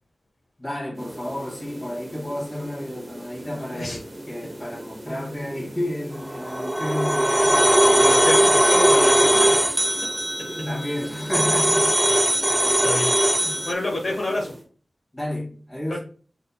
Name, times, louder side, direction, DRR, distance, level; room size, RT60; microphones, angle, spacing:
voice 1, 0.6-8.2 10.4-11.9 13.4-13.5 15.1-16.0, left 1 dB, 25° left, 1.8 m, -31 dB
sound 1, 0.9-14.7, right 1 dB, 30° right, 0.8 m, -41 dB
sound 2, 6.3-13.7, right 1 dB, 10° right, 0.3 m, -19 dB
voice 2, 7.9-9.6 12.5-13.1 13.6-14.5, left 2 dB, 60° left, 0.8 m, -28 dB
4.0 x 3.7 x 2.2 m
wide cardioid pair, 85°, 0 cm